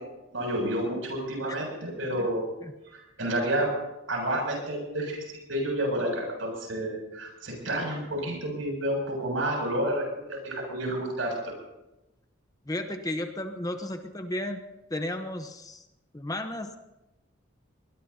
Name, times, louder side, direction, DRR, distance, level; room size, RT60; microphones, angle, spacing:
voice 1, 0.0-2.5 2.9-3.7 4.1-5.2 5.5-11.5, right 1 dB, 75° right, 0 dB, 7.2 m, -30 dB
voice 2, 12.7-14.6 14.9-15.9 16.1-16.8, left 1 dB, 20° left, 6 dB, 1.0 m, -33 dB
23.5 x 20.5 x 2.9 m, 0.97 s
head